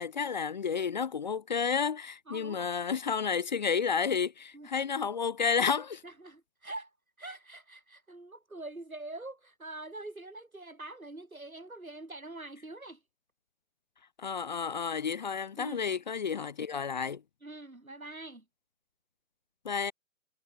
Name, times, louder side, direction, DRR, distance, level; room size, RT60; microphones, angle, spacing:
voice 1, 0.0-6.0 14.2-17.2 19.6-19.9, left 6 dB, 35° left, 0.5 m, -31 dB
voice 2, 2.3-2.7 4.5-4.7 6.0-6.9 7.2-13.0 15.6-15.8 17.4-18.4, right 2 dB, 90° right, 6.4 m, -44 dB
figure-of-eight pair, 135°, 41 cm